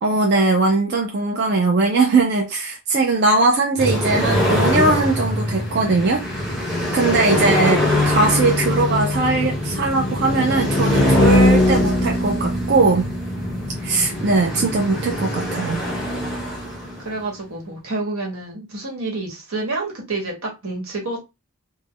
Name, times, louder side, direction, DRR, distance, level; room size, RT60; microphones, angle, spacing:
voice 1, 0.0-6.2 6.9-13.1 13.8-15.8, right 3 dB, 50° right, 0.4 m, -20 dB
sound 1, 3.8-17.2, left 1 dB, ahead, 0.9 m, -21 dB
voice 2, 17.0-21.2, right 2 dB, 85° right, 1.1 m, -29 dB
2.3 x 2.1 x 3.4 m
head